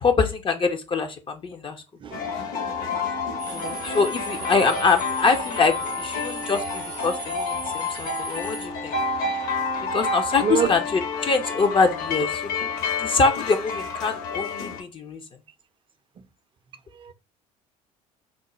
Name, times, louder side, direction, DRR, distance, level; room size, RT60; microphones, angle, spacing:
voice 1, 0.0-1.8 3.5-8.9 9.9-12.4 13.0-15.2, left 4 dB, 25° left, 0.5 m, -24 dB
voice 2, 2.0-2.2 3.0-3.1 7.5-7.7 9.7-9.8 10.4-10.7 16.9-17.1, right 8 dB, 25° right, 0.4 m, -26 dB
sound 1, 2.1-14.8, left 4 dB, 50° left, 0.8 m, -29 dB
sound 2, 3.4-8.7, right 4 dB, 90° right, 0.5 m, -39 dB
3.6 x 2.0 x 3.0 m
figure-of-eight pair, 60°, 19 cm